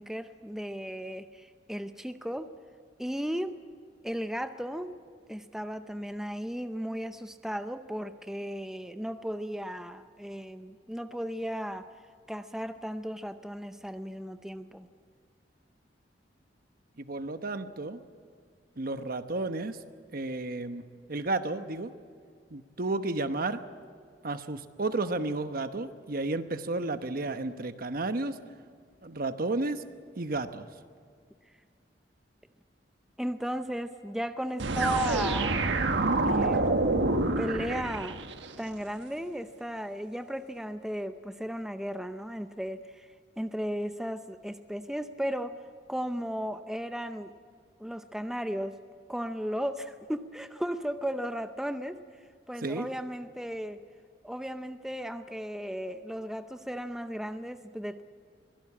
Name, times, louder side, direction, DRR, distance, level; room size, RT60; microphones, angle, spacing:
voice 1, 0.0-2.5 3.0-3.6 4.0-5.0 5.3-11.9 12.3-14.9 33.2-35.6 36.2-36.8 37.4-38.2 38.6-43.1 43.4-45.5 45.9-47.3 47.8-48.8 49.1-52.0 52.5-53.8 54.2-58.0, equal, 5° right, 9 dB, 0.6 m, -35 dB
voice 2, 17.0-18.0 18.8-19.8 20.1-20.8 21.1-21.9 22.5-23.6 24.2-28.4 29.0-29.8 30.2-30.7 52.6-52.9, right 2 dB, 55° right, 9 dB, 1.1 m, -32 dB
sound 1, 34.6-38.5, right 2 dB, 90° right, 1.4 m, -27 dB
23.5 x 17.5 x 8.5 m, 2.1 s
head